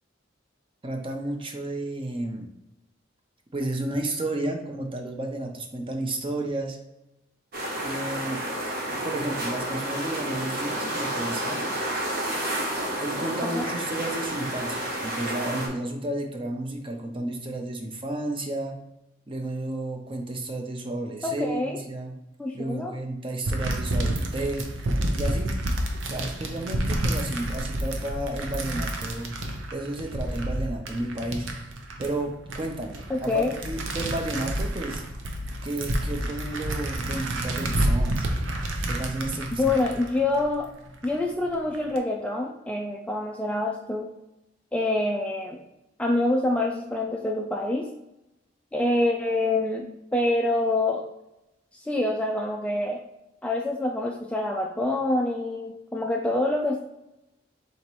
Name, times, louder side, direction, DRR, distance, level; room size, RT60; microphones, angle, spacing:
voice 1, 0.8-2.5 3.5-6.8 7.8-8.4 9.0-11.6 13.0-18.8 19.3-22.1 22.5-24.7 25.2-25.5 26.1-29.4 29.7-31.5 32.0-35.0 35.6-38.3 38.9-39.7, right 1 dB, 30° right, 3 dB, 0.6 m, -32 dB
sound 1, 7.5-15.7, right 1 dB, 55° right, 1.1 m, -30 dB
voice 2, 21.2-21.8 22.4-22.9 33.1-33.5 39.6-40.7 41.0-44.1 44.7-45.6 46.0-47.9 48.7-51.0 51.7-53.0 53.4-56.8, left 2 dB, 5° left, 1 dB, 0.3 m, -26 dB
sound 2, 23.4-41.1 41.5-42.0, right 1 dB, 85° right, 0.7 m, -29 dB
4.0 x 2.8 x 4.5 m, 0.91 s
head